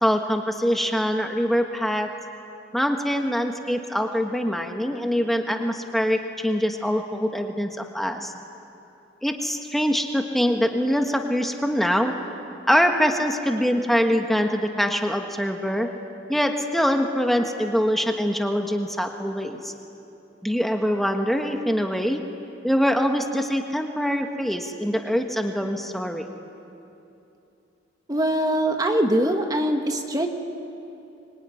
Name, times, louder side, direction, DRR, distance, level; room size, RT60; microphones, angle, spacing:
voice 1, 0.0-2.2 2.7-8.3 9.2-12.2 12.7-16.0 16.3-19.7 20.4-22.2 22.6-26.3, equal, ahead, 4 dB, 1.4 m, -24 dB
voice 2, 28.1-30.3, right 1 dB, 20° right, 4 dB, 1.4 m, -22 dB
25.0 x 23.5 x 9.9 m, 2.8 s
head